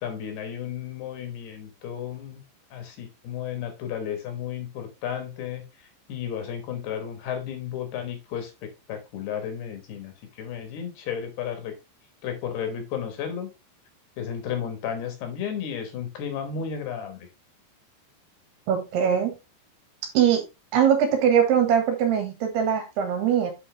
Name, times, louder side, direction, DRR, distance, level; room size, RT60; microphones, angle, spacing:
voice 1, 0.0-2.4 2.7-11.7 12.2-13.5 14.2-17.3, left 8 dB, 70° left, 6 dB, 3.1 m, -33 dB
voice 2, 18.7-19.3 20.1-20.4 20.7-23.5, right 8 dB, 70° right, 5 dB, 3.3 m, -21 dB
8.2 x 5.5 x 3.2 m, 0.25 s
omnidirectional pair, 5.2 m